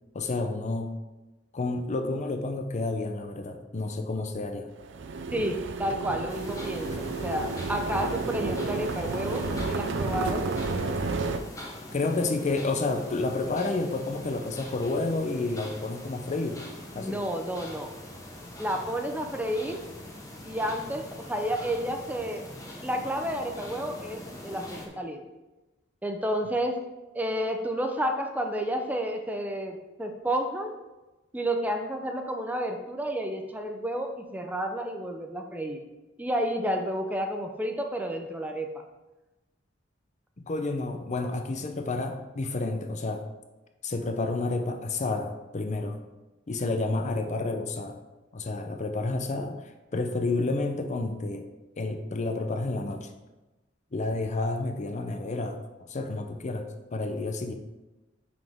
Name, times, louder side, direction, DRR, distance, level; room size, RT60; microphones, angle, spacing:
voice 1, 0.1-0.9 1.5-4.7 6.9-7.0 11.9-16.6 16.9-17.2 40.4-43.2 43.8-46.0 46.5-48.0 48.3-51.5 51.8-53.1 53.9-57.5, left 2 dB, 40° left, 6 dB, 0.6 m, -30 dB
sound 1, 4.8-11.4, right 3 dB, 65° right, 0.5 m, -31 dB
voice 2, 5.3-10.4 17.0-17.9 18.6-19.8 20.4-22.4 22.8-25.2 26.0-26.8 27.1-30.7 31.3-35.8 36.2-38.7, equal, 10° right, 3 dB, 0.6 m, -31 dB
sound 2, 6.3-24.9, left 1 dB, 20° left, 1.1 m, -43 dB
7.2 x 5.9 x 3.5 m, 1.1 s
head